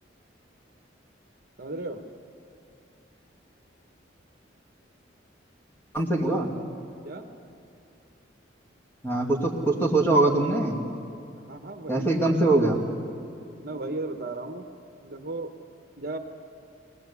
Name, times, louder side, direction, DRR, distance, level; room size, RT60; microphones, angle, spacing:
voice 1, 1.6-2.0 6.2-6.5 7.0-7.3 11.4-12.8 13.6-14.7 15.0-15.5 16.0-16.2, right 2 dB, 50° right, 4 dB, 1.3 m, -36 dB
voice 2, 5.9-6.5 9.0-10.8 11.9-12.8, right 2 dB, 10° left, -1 dB, 2.4 m, -23 dB
22.5 x 18.5 x 8.5 m, 2.7 s
head